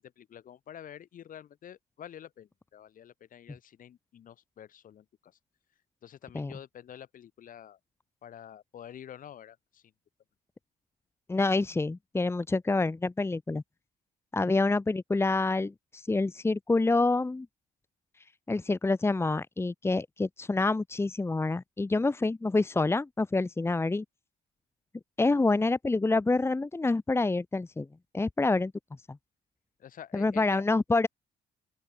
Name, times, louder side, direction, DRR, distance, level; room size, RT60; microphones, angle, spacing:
voice 1, 0.0-5.3 6.0-7.8 8.2-9.8 29.8-30.6, left 10 dB, 55° left, 5.4 m, -48 dB
voice 2, 11.3-13.6 14.3-17.5 18.5-24.0 25.2-27.9 28.1-28.7 29.1-29.2 30.1-31.1, left 3 dB, 15° left, 1.7 m, -27 dB
open air
cardioid pair, 110°, 17 cm